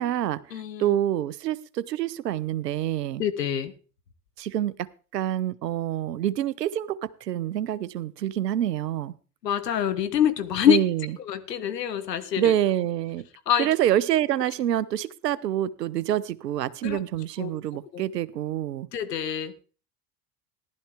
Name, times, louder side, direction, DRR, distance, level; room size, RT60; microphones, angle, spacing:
voice 1, 0.0-3.2 4.4-9.1 10.7-11.2 12.3-13.2 13.6-18.9, right 11 dB, 85° right, 0.7 m, -27 dB
voice 2, 0.5-0.9 3.2-3.7 9.4-10.8 11.3-12.5 13.5-13.7 16.8-17.0 17.4-17.5 17.9-18.1 18.9-19.5, left 10 dB, 85° left, 1.1 m, -25 dB
15.0 x 11.5 x 3.5 m
hypercardioid pair, 70°, 47 cm